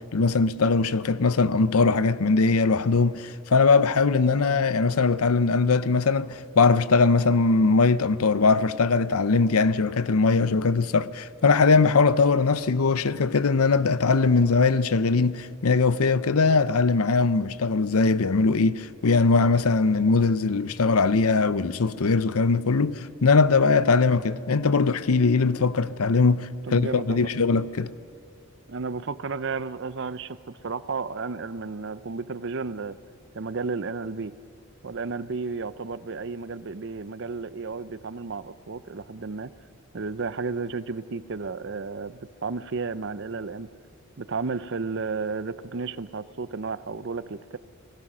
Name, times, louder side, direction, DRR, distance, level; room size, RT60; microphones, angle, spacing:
voice 1, 0.0-27.9, left 4 dB, 85° left, 0.7 m, -21 dB
voice 2, 26.7-27.3 28.7-33.0 33.3-34.3 34.8-39.5 39.9-43.7 44.2-47.6, right 4 dB, 55° right, 0.6 m, -32 dB
29.5 x 19.5 x 6.2 m
head